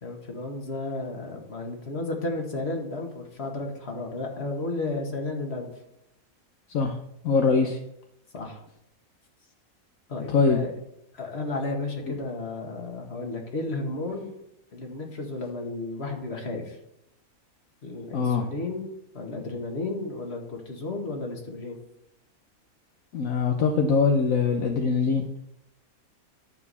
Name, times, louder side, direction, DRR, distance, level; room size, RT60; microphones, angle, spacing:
voice 1, 0.0-5.7 8.3-8.6 10.1-10.7 11.1-14.3 14.7-16.8 17.8-18.9 19.1-21.8, left 2 dB, 45° left, 2 dB, 2.0 m, -33 dB
voice 2, 7.2-7.8 10.3-10.6 18.1-18.5 23.1-25.2, left 5 dB, 70° left, 4 dB, 1.2 m, -22 dB
11.5 x 4.7 x 6.9 m, 0.79 s
omnidirectional pair, 1.5 m